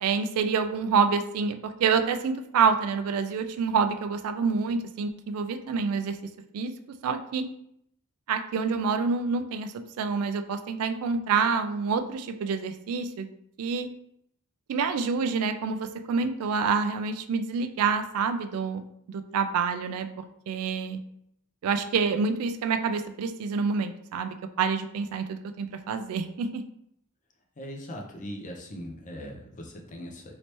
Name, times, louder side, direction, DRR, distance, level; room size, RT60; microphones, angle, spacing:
voice 1, 0.0-6.2 6.5-6.7 7.0-7.4 8.3-13.3 13.6-13.9 14.7-18.8 19.1-20.1 20.5-21.0 21.6-26.6, right 5 dB, 75° right, 8 dB, 0.3 m, -27 dB
voice 2, 27.6-30.3, equal, 35° left, 1 dB, 0.6 m, -40 dB
3.2 x 2.9 x 2.9 m, 0.74 s
head